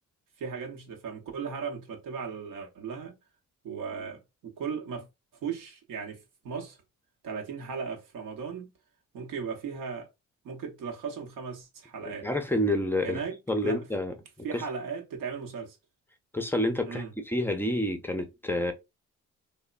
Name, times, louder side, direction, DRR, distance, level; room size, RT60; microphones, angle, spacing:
voice 1, 0.4-3.2 3.6-5.1 5.4-6.8 7.2-8.7 9.1-10.1 10.4-12.3 13.0-13.9 14.4-15.8 16.9-17.1, right 6 dB, 85° right, 0.9 m, -37 dB
voice 2, 12.1-13.2 13.5-14.6 16.3-18.7, left 1 dB, 5° left, 0.4 m, -29 dB
2.9 x 2.1 x 2.3 m
cardioid pair, 90°, 30 cm